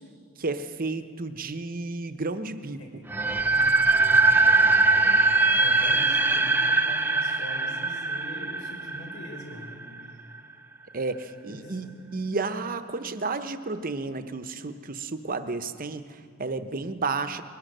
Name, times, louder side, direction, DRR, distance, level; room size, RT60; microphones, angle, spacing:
voice 1, 0.4-2.8 10.9-17.4, right 3 dB, 40° right, 10 dB, 0.8 m, -32 dB
sound 1, 3.1-10.0, right 3 dB, 10° right, 0.5 m, -22 dB
voice 2, 3.5-9.8 11.5-11.9, equal, 70° left, 0 dB, 5.7 m, -42 dB
21.5 x 18.5 x 6.6 m, 2.3 s
head